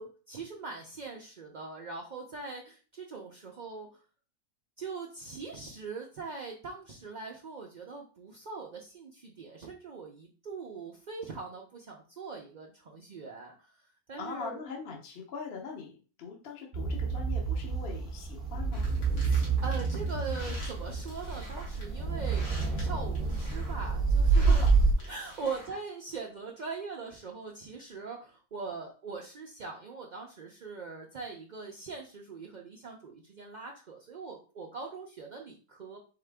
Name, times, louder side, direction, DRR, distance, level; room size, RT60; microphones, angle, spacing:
voice 1, 0.0-4.0 4.8-13.8 14.1-14.6 19.2-24.7 25.1-36.0, right 4 dB, 65° right, 0 dB, 0.4 m, -41 dB
voice 2, 14.1-18.9 24.3-24.7, left 5 dB, 45° left, 0 dB, 1.0 m, -42 dB
sound 1, 16.7-24.9, right 4 dB, 45° right, 0.8 m, -28 dB
sound 2, 18.7-25.7, equal, 80° left, 2.1 m, -48 dB
3.9 x 3.7 x 3.4 m, 0.37 s
omnidirectional pair, 1.6 m